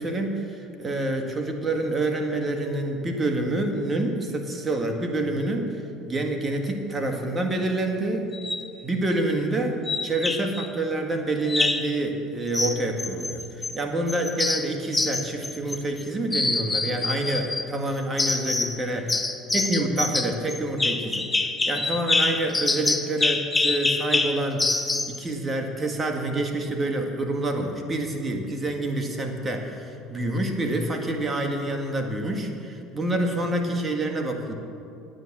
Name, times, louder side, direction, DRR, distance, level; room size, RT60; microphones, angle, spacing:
voice 1, 0.0-8.3 8.8-19.0 19.5-21.3 21.7-34.5, right 2 dB, 25° right, 4 dB, 1.7 m, -27 dB
sound 1, 8.3-8.7 9.9-10.7 11.5-11.9 12.5-13.8 14.1-16.0 16.3-17.7 18.2-18.8 19.1-25.2, left 3 dB, 15° left, 0.8 m, -26 dB
9.4 x 9.1 x 7.3 m, 2.6 s
supercardioid pair, 95°, 0 cm